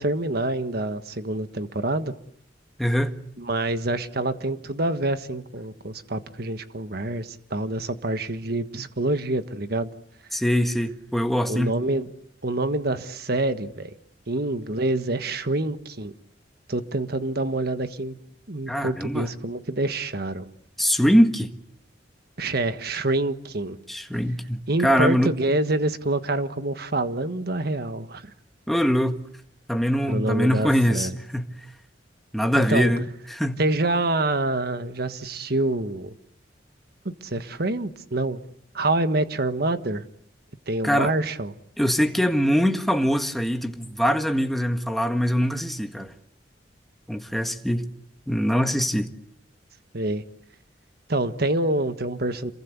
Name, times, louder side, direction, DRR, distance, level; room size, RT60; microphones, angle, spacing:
voice 1, 0.0-2.1 3.4-9.9 11.5-12.1 12.4-13.9 14.3-16.1 16.7-18.2 18.5-20.5 22.4-23.8 24.7-28.3 30.1-31.1 32.5-32.9 33.6-36.1 37.0-38.4 38.7-40.0 40.7-41.5 49.9-50.2 51.1-52.5, right 2 dB, 60° right, 1.4 m, -26 dB
voice 2, 2.8-3.1 10.3-11.8 18.7-19.3 20.8-21.5 23.9-25.3 28.7-29.2 29.7-31.5 32.3-33.0 33.3-33.6 40.8-41.1 41.8-46.1 47.1-47.8 48.3-49.1, equal, ahead, 1.7 m, -23 dB
27.5 x 22.5 x 8.2 m
head